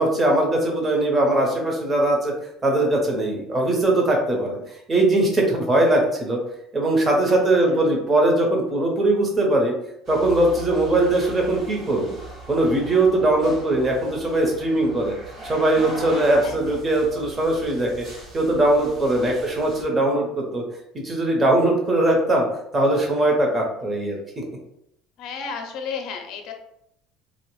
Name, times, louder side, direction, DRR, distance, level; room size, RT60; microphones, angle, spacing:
voice 1, 0.0-2.3 2.6-4.6 4.9-6.4 6.7-9.7 10.1-12.2 12.5-15.1 15.4-18.0 18.3-20.6 21.0-22.5 22.7-24.4, right 1 dB, 25° right, 0 dB, 0.8 m, -20 dB
voice 2, 4.3-4.7 7.3-7.9 16.3-16.8 25.2-26.5, left 5 dB, 60° left, 4 dB, 0.5 m, -35 dB
sound 1, 10.0-19.8, right 2 dB, 40° right, 1.2 m, -40 dB
3.0 x 2.1 x 3.0 m, 0.77 s
cardioid pair, 130°, 0 cm